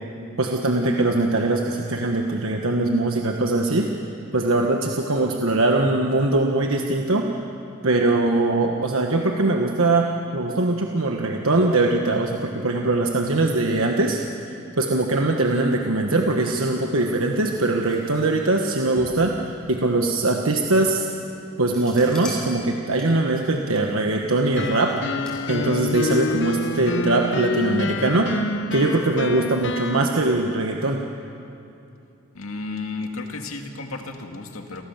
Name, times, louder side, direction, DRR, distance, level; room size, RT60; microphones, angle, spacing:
voice 1, 0.4-3.9 4.3-7.3 7.8-14.2 14.8-21.1 21.6-28.3 28.7-31.0, right 2 dB, 75° right, 2 dB, 1.3 m, -21 dB
sound 1, 16.1-26.3, equal, 5° left, 6.5 m, -44 dB
sound 2, 24.6-30.1, left 2 dB, 60° left, 0.9 m, -27 dB
voice 2, 32.3-34.8, left 3 dB, 85° left, 3 dB, 2.2 m, -33 dB
29.0 x 17.0 x 7.4 m, 2.7 s
head